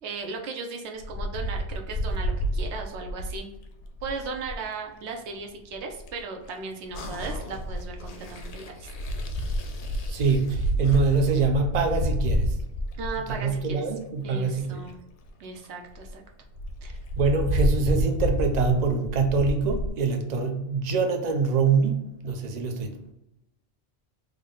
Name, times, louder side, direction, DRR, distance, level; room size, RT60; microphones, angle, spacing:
voice 1, 0.0-3.5 4.0-8.9 13.0-13.8 14.2-15.0 15.4-16.2 16.8-17.0, right 4 dB, 75° right, 0.9 m, -36 dB
Wind, 1.0-4.6 5.7-6.2 6.9-13.9 14.5-14.6 14.8-14.9 15.2-15.3 15.6-15.7 16.0-16.1 16.5-19.9, equal, 85° left, 0.9 m, -29 dB
sound 1, 6.9-11.5, left 3 dB, 55° left, 0.4 m, -44 dB
voice 2, 10.1-12.5 13.3-14.8 17.2-23.1, right 4 dB, 50° right, 0.5 m, -25 dB
3.5 x 2.1 x 3.6 m
omnidirectional pair, 1.2 m